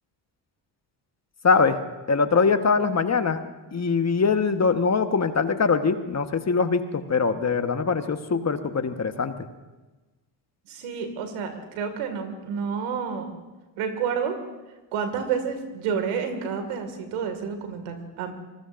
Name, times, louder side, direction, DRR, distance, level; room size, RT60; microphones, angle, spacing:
voice 1, 1.4-1.8 2.1-3.4 3.7-9.3, left 5 dB, 35° left, 8 dB, 1.3 m, -22 dB
voice 2, 10.7-13.4 13.8-14.4 14.9-18.3, right 6 dB, 85° right, 6 dB, 2.2 m, -29 dB
25.0 x 20.0 x 2.6 m, 1.1 s
supercardioid pair, 60°, 49 cm